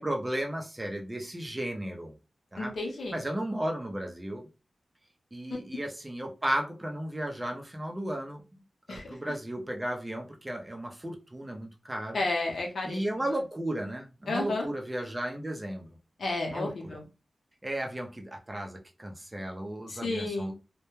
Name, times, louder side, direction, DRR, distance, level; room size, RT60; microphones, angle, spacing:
voice 1, 0.0-2.1 2.5-2.7 3.1-4.5 5.3-8.6 8.9-12.2 12.8-15.9 16.5-16.7 17.6-20.5, right 1 dB, 20° right, 2 dB, 0.5 m, -34 dB
voice 2, 2.6-3.2 8.9-9.3 12.1-13.3 14.3-14.7 16.2-17.0 19.9-20.5, left 2 dB, 80° left, 0 dB, 0.7 m, -32 dB
2.2 x 2.1 x 3.0 m, 0.31 s
wide cardioid pair, 110°, 0 cm